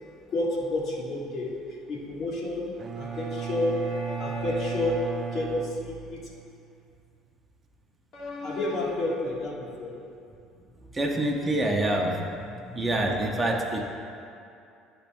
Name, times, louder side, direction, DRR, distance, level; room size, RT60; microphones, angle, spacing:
voice 1, 0.3-1.5 1.9-6.2 8.1-9.9, left 2 dB, 55° left, -4 dB, 1.7 m, -30 dB
Bowed string instrument, 2.8-6.6, right 7 dB, 40° right, 0.3 m, -35 dB
voice 2, 10.9-12.2 12.6-13.8, right 1 dB, 25° right, 0 dB, 0.9 m, -26 dB
11.0 x 4.0 x 3.5 m, 2.5 s
hypercardioid pair, 65°, 0 cm